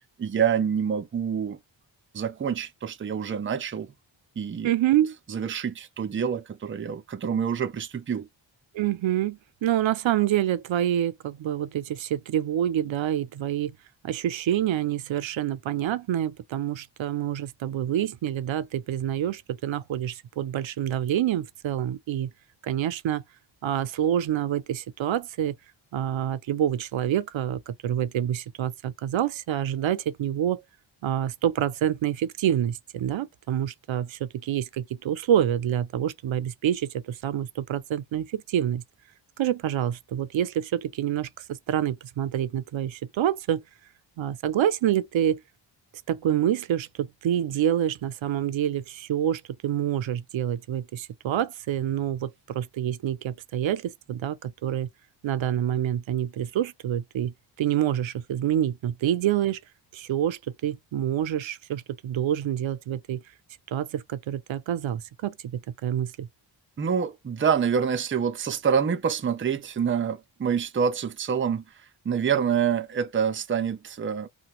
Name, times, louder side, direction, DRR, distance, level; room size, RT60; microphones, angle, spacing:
voice 1, 0.2-1.6 2.1-3.9 4.4-4.7 5.3-8.3 66.8-71.6 72.1-74.3, right 7 dB, 30° right, 0.4 m, -26 dB
voice 2, 4.6-5.1 8.7-13.8 14.0-22.3 22.6-23.2 23.6-25.5 25.9-30.6 31.0-38.8 39.4-43.6 44.2-45.4 46.1-54.9 55.2-59.6 59.9-63.2 63.7-66.3, right 11 dB, 80° right, 0.5 m, -27 dB
3.2 x 2.2 x 2.9 m
wide cardioid pair, 120°, 46 cm